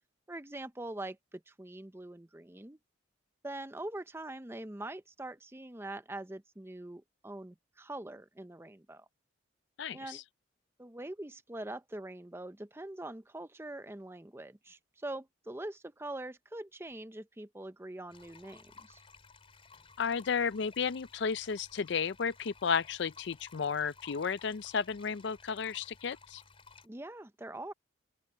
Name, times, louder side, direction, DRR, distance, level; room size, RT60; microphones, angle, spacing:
voice 1, 0.3-2.8 3.4-9.1 9.9-10.2 10.8-19.0 26.8-27.7, right 1 dB, 10° right, 0.6 m, -43 dB
voice 2, 9.8-10.2 20.0-26.4, left 6 dB, 60° left, 0.4 m, -33 dB
sound 1, 18.1-26.9, left 4 dB, 30° left, 4.3 m, -57 dB
open air
head